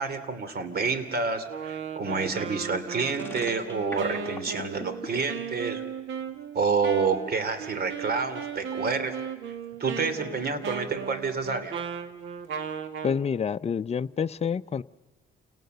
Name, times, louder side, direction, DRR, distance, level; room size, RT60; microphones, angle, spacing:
voice 1, 0.0-5.8 6.5-9.2 9.8-11.7, right 4 dB, 50° right, 11 dB, 3.0 m, -28 dB
Wind instrument woodwind instrument, 1.5-13.2, right 6 dB, 75° right, 1.9 m, -36 dB
sound 1, 3.1-5.2, left 2 dB, 10° left, 2.2 m, -40 dB
voice 2, 13.0-14.8, left 6 dB, 30° left, 12 dB, 0.6 m, -28 dB
28.5 x 18.5 x 6.8 m, 1.2 s
cardioid pair, 90°, 20 cm